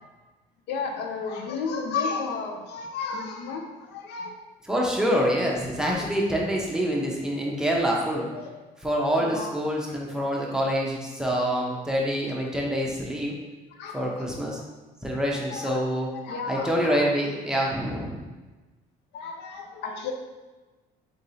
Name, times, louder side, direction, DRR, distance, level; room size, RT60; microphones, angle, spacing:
voice 1, 0.7-4.4 6.0-6.1 8.3-8.5 9.2-9.5 13.7-14.3 15.5-15.8 16.1-17.0 17.5-17.6 19.1-20.1, left 5 dB, 80° left, 4 dB, 0.5 m, -33 dB
voice 2, 4.7-8.3 8.8-13.4 13.9-14.6 15.0-16.1 16.5-18.2, equal, 5° right, -3 dB, 0.7 m, -26 dB
3.9 x 3.6 x 2.7 m, 1.2 s
cardioid pair, 110°, 17 cm